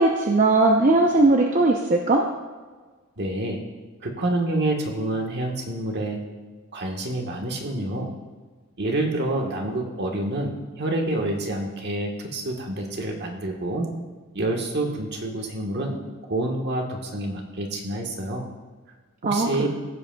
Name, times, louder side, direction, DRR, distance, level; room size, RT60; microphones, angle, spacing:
voice 1, 0.0-2.2 19.3-19.7, right 2 dB, 40° right, 1 dB, 0.7 m, -19 dB
voice 2, 3.2-3.6 4.0-6.2 6.7-8.1 8.8-13.9 14.3-16.0 16.3-18.5 19.2-19.7, right 1 dB, 55° right, 1 dB, 1.4 m, -27 dB
16.0 x 7.6 x 2.3 m, 1.4 s
head